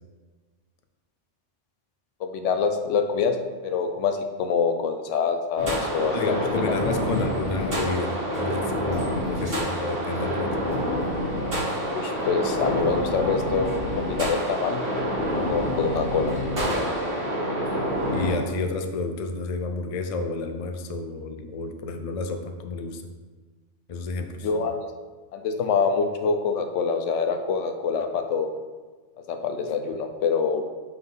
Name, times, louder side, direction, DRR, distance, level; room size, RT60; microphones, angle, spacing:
voice 1, 2.2-3.4 3.6-6.7 11.9-14.8 15.5-16.3 24.4-24.9 25.3-28.5 29.3-30.6, left 5 dB, 85° left, 6 dB, 1.0 m, -25 dB
sound 1, 5.6-18.3, equal, 50° right, 2.3 m, -27 dB
voice 2, 6.1-10.6 18.1-23.0 23.9-24.5, left 3 dB, 50° left, 6 dB, 0.4 m, -30 dB
5.6 x 3.4 x 5.5 m, 1.3 s
omnidirectional pair, 1.2 m